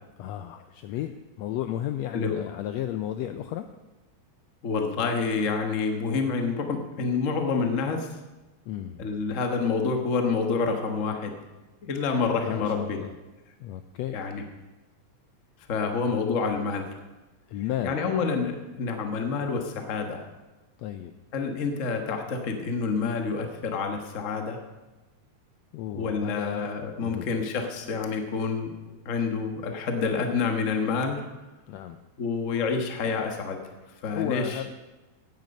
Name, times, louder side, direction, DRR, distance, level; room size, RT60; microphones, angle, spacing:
voice 1, 0.2-3.7 8.7-9.0 12.4-13.1 13.6-14.2 17.5-18.0 20.8-21.1 25.7-26.7 27.0-27.3 31.7-32.0 34.1-34.7, left 12 dB, 85° left, 9 dB, 1.5 m, -33 dB
voice 2, 4.6-8.1 9.0-11.3 11.8-13.0 14.1-14.4 15.7-16.8 17.8-20.2 21.3-24.6 25.9-28.7 29.0-31.2 32.2-33.6 34.0-34.8, left 4 dB, 50° left, 4 dB, 0.9 m, -28 dB
16.0 x 9.4 x 5.3 m, 1.1 s
omnidirectional pair, 3.6 m